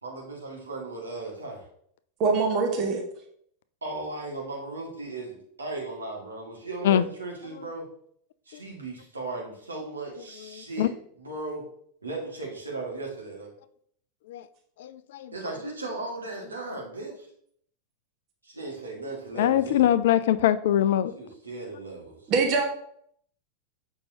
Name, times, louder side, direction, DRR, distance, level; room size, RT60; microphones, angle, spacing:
voice 1, 0.0-1.6 3.8-7.9 8.5-10.9 11.2-11.6 12.0-13.5 15.3-17.3 18.4-19.9 21.1-22.2, right 2 dB, 75° right, -2 dB, 1.8 m, -36 dB
voice 2, 2.2-3.0 22.3-22.6, right 4 dB, 35° right, 2 dB, 1.3 m, -23 dB
voice 3, 10.5-10.9 14.3-14.5 14.8-15.3 19.3-21.1, left 11 dB, 55° left, 14 dB, 0.3 m, -23 dB
6.8 x 5.4 x 2.8 m, 0.66 s
figure-of-eight pair, 90°, 0 cm